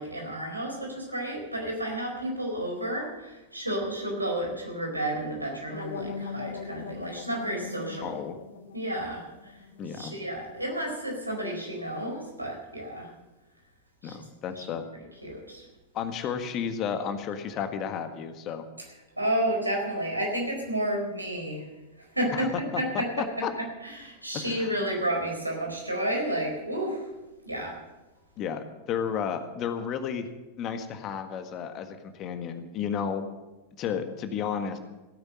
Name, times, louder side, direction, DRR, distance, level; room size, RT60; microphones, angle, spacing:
voice 1, 0.0-8.2 8.7-9.5 9.9-13.1 14.0-14.2 14.6-14.7 15.2-15.7 19.2-21.6 22.1-23.4 23.8-27.1 27.4-27.8, right 1 dB, 85° right, 0 dB, 4.4 m, -31 dB
sound 1, 5.7-10.7, left 5 dB, 65° left, 1.5 m, -41 dB
voice 2, 8.0-8.4 9.8-10.1 14.0-14.8 15.9-18.6 22.3-22.5 22.7-22.8 23.2-23.5 24.3-24.8 28.4-30.3 30.6-33.2 33.8-34.8, left 7 dB, 35° left, 8 dB, 1.6 m, -32 dB
16.5 x 9.7 x 7.7 m, 1.1 s
figure-of-eight pair, 90°, 0 cm